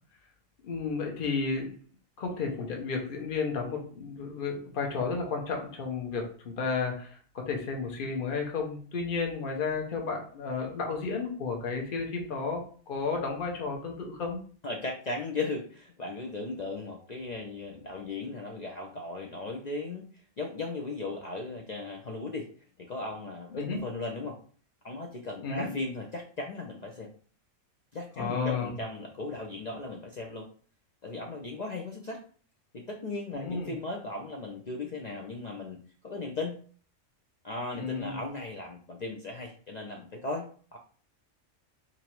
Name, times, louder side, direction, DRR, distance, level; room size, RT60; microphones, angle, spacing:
voice 1, 0.6-1.7 2.2-14.4 23.5-23.8 25.4-25.7 28.2-28.7 33.3-33.7 37.7-38.2, left 4 dB, 45° left, 1 dB, 1.0 m, -32 dB
voice 2, 14.6-22.5 22.8-24.4 24.8-27.1 27.9-30.5 31.0-32.2 32.7-35.8 36.0-36.6 37.4-40.5 40.7-40.8, left 3 dB, 65° left, 1 dB, 0.4 m, -37 dB
2.9 x 2.6 x 4.4 m, 0.43 s
omnidirectional pair, 1.4 m